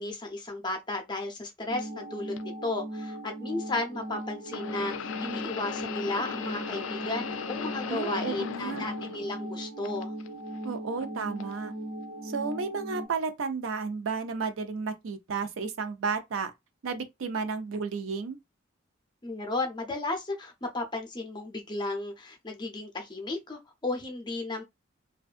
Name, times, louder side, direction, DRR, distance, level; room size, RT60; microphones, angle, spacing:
voice 1, 0.0-2.3 2.6-10.1 19.2-24.6, left 2 dB, 20° left, 0.5 m, -34 dB
sound 1, 1.7-13.1, right 1 dB, 65° right, 0.9 m, -38 dB
sound 2, 2.4-2.5 4.5-9.5 9.8-10.6 11.4-11.5 12.5-12.6, left 7 dB, 80° left, 0.3 m, -37 dB
voice 2, 7.9-8.8 10.6-11.7 12.2-16.5 16.8-18.4, right 5 dB, 90° right, 0.5 m, -32 dB
2.5 x 2.2 x 2.4 m
head